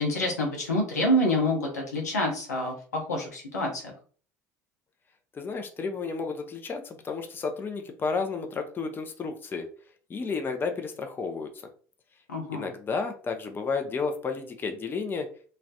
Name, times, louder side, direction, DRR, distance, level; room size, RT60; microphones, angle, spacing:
voice 1, 0.0-3.9 12.3-12.7, left 1 dB, 90° left, 0 dB, 0.7 m, -27 dB
voice 2, 5.3-9.6 10.1-11.5 12.5-15.3, left 4 dB, 25° left, 5 dB, 0.4 m, -32 dB
2.3 x 2.0 x 2.7 m, 0.44 s
hypercardioid pair, 70°, 9 cm